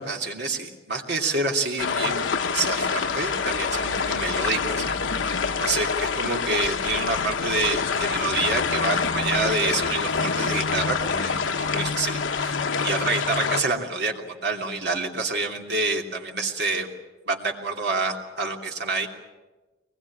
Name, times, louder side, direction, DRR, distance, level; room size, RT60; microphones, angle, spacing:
voice 1, 0.0-2.2 2.5-16.9 17.3-19.1, right 3 dB, 60° right, 1 dB, 3.1 m, -28 dB
sound 1, 1.8-13.6, left 5 dB, 90° left, 1.0 m, -26 dB
23.5 x 21.0 x 8.7 m, 1.2 s
head